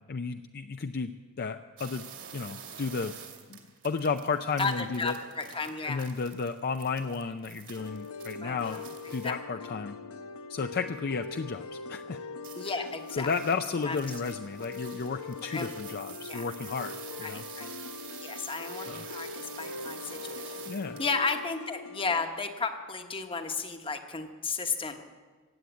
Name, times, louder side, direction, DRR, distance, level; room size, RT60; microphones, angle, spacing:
voice 1, 0.1-2.1 2.3-3.1 3.5-3.6 3.8-5.2 5.8-8.8 9.1-10.0 10.5-12.2 12.7-17.4 18.9-19.1 20.7-21.0, left 5 dB, 45° left, 8 dB, 0.5 m, -33 dB
sound 1, 1.8-9.3 12.4-21.4, right 8 dB, 60° right, 2.2 m, -47 dB
voice 2, 4.6-6.0 8.4-8.8 9.2-9.4 12.6-13.3 13.8-14.0 15.5-15.7 16.3-16.4 17.2-17.7 18.2-20.6 21.0-25.0, left 4 dB, 25° left, 6 dB, 1.1 m, -33 dB
sound 2, 7.8-22.2, left 4 dB, 75° left, 0.8 m, -42 dB
16.0 x 8.6 x 9.4 m, 1.4 s
head